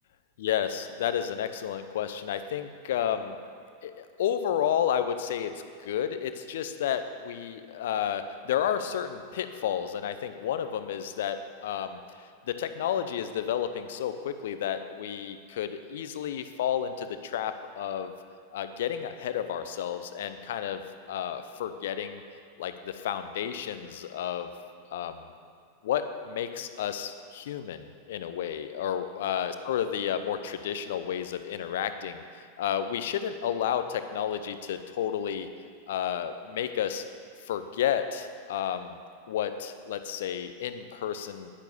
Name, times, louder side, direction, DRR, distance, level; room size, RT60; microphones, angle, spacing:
voice 1, 0.4-3.4 3.8-12.0 12.4-18.1 18.5-20.8 21.1-22.2 22.6-24.5 24.9-25.3 25.8-35.5 35.9-37.0 37.5-39.0 39.3-41.5, left 9 dB, 55° left, 10 dB, 0.7 m, -31 dB
10.5 x 10.5 x 6.8 m, 2.3 s
figure-of-eight pair, 90°, 0 cm